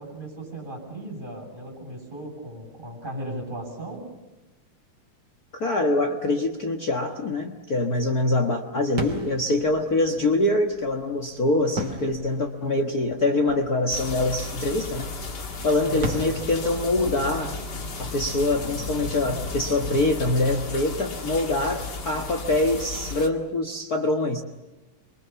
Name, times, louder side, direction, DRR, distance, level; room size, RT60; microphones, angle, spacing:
voice 1, 0.0-4.1 15.8-16.2, right 1 dB, 10° right, 1 dB, 7.9 m, -36 dB
voice 2, 5.5-15.1 15.6-17.5 18.0-24.4, left 2 dB, 80° left, 4 dB, 0.8 m, -24 dB
sound 1, 8.9-19.5, right 1 dB, 35° right, 3.4 m, -39 dB
sound 2, 13.9-23.3, left 3 dB, 35° left, 1.9 m, -34 dB
28.5 x 24.0 x 7.1 m, 1.1 s
omnidirectional pair, 4.2 m